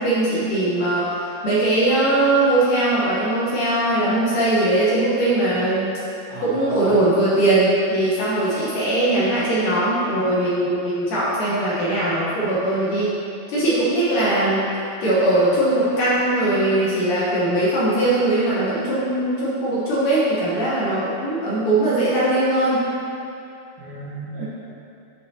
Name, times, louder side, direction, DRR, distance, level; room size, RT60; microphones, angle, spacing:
voice 1, 0.0-5.9 6.4-13.1 13.5-14.6 15.0-22.8 24.4-24.5, right 1 dB, 70° left, -9 dB, 2.1 m, -20 dB
voice 2, 6.3-6.9 23.8-24.4, right 3 dB, 65° right, -9 dB, 2.8 m, -35 dB
9.9 x 5.2 x 2.8 m, 2.6 s
omnidirectional pair, 4.9 m